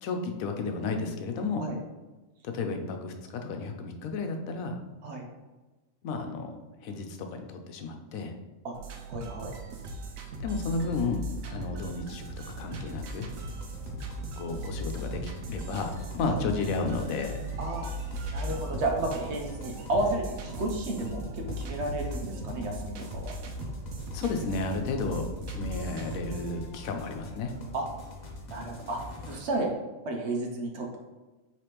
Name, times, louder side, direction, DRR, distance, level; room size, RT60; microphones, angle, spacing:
voice 1, 0.0-1.6 2.4-4.7 6.0-6.6 6.8-8.3 10.4-11.2 11.5-12.2 12.6-13.3 14.4-17.3 24.1-27.5, left 3 dB, 90° left, 5 dB, 1.0 m, -32 dB
sound 1, 8.7-26.6, right 1 dB, 90° right, 1.0 m, -38 dB
voice 2, 9.1-9.5 16.2-16.4 17.6-17.9 18.3-23.3 27.7-27.9 28.5-29.0 29.3-29.7 30.0-31.0, right 2 dB, 60° right, 2 dB, 0.9 m, -32 dB
sound 2, 12.2-29.4, left 1 dB, 45° left, 0.7 m, -45 dB
4.9 x 3.2 x 3.0 m, 1.2 s
omnidirectional pair, 1.4 m